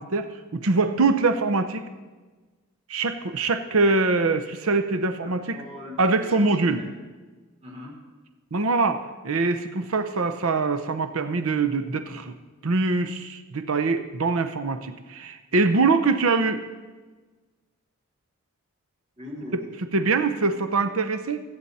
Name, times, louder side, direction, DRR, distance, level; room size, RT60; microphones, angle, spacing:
voice 1, 0.0-1.8 2.9-5.6 6.0-6.8 8.5-9.0 9.2-12.3 12.6-16.6 19.9-21.4, right 3 dB, 70° right, 9 dB, 0.8 m, -23 dB
voice 2, 5.2-6.5 6.8-7.0 7.6-7.9 19.2-20.1, left 1 dB, 30° right, -3 dB, 4.2 m, -41 dB
22.5 x 8.9 x 4.2 m, 1.3 s
head